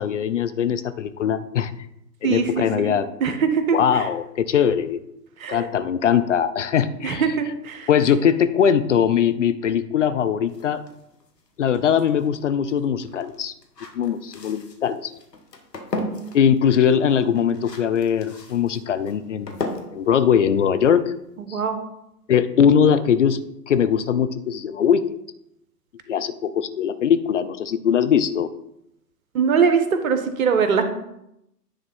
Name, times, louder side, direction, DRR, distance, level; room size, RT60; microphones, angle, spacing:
voice 1, 0.0-1.7 2.2-3.1 3.7-5.0 5.5-7.2 7.9-10.8 11.6-13.5 13.9-15.1 16.3-19.6 19.9-21.1 21.5-21.6 22.3-23.4 23.7-25.0 26.1-28.5, left 8 dB, 50° left, 12 dB, 0.5 m, -21 dB
voice 2, 2.2-4.0 5.4-5.7 7.0-7.9 21.4-21.8 29.3-30.8, right 6 dB, 55° right, 8 dB, 1.2 m, -22 dB
sound 1, 10.5-21.3, left 2 dB, 80° left, 1.4 m, -37 dB
9.8 x 3.6 x 5.4 m, 0.81 s
figure-of-eight pair, 115°, 49 cm